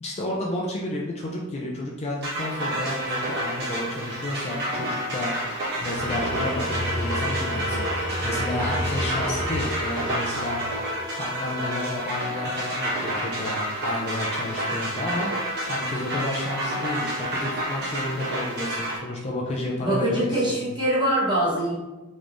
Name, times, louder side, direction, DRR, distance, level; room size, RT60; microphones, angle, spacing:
voice 1, 0.0-5.5 5.8-10.9 11.2-20.6, left 1 dB, 30° left, -3 dB, 0.4 m, -31 dB
sound 1, 2.2-19.0, right 1 dB, 50° right, 1.2 m, -29 dB
Tools, 5.8-11.2, equal, 10° left, 0.9 m, -31 dB
voice 2, 19.8-21.7, right 1 dB, 20° right, -8 dB, 1.2 m, -23 dB
3.5 x 3.1 x 2.5 m, 1.1 s
head